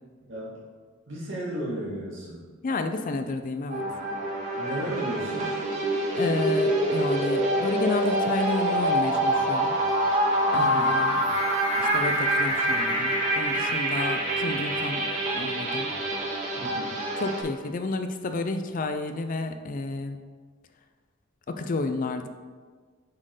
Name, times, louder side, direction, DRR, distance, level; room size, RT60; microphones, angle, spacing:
voice 1, 1.1-2.4 4.6-5.6 10.5-11.0 16.6-17.0, right 1 dB, 65° right, -7 dB, 2.0 m, -34 dB
voice 2, 2.6-3.8 6.1-9.7 10.5-11.2 11.8-15.0 15.3-15.9 17.2-20.2 21.5-22.3, left 3 dB, 40° left, 7 dB, 0.4 m, -31 dB
sound 1, 3.7-17.4, right 1 dB, 40° right, 1.4 m, -26 dB
sound 2, 9.3-9.6 9.9-10.1 10.4-13.7, left 5 dB, 75° left, 0.9 m, -31 dB
7.2 x 4.5 x 4.9 m, 1.5 s
head